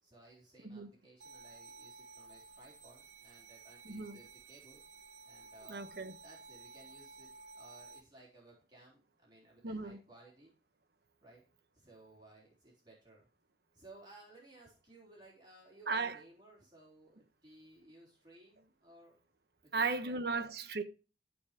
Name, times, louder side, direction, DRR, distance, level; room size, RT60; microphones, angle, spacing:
voice 1, 0.0-4.8 5.2-5.9 6.2-10.5 11.2-11.4 11.7-13.3 13.7-19.2 19.6-20.5, right 2 dB, 25° right, 3.8 m, -59 dB
sound 1, 1.2-8.0, right 3 dB, 80° right, 2.1 m, -54 dB
voice 2, 3.9-4.2 5.7-6.1 9.6-10.0 15.9-16.2 19.7-20.8, right 4 dB, 60° right, 1.1 m, -36 dB
14.0 x 5.0 x 5.0 m
head